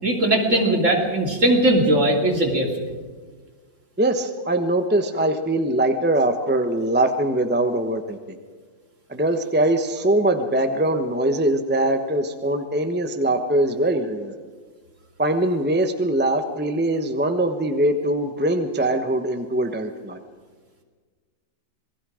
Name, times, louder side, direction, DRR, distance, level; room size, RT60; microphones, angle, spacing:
voice 1, 0.0-2.7, right 1 dB, 40° right, 1 dB, 3.1 m, -19 dB
voice 2, 4.0-8.2 9.1-14.3 15.2-20.2, right 1 dB, 10° right, 6 dB, 0.6 m, -22 dB
27.0 x 19.5 x 5.0 m, 1.5 s
omnidirectional pair, 2.2 m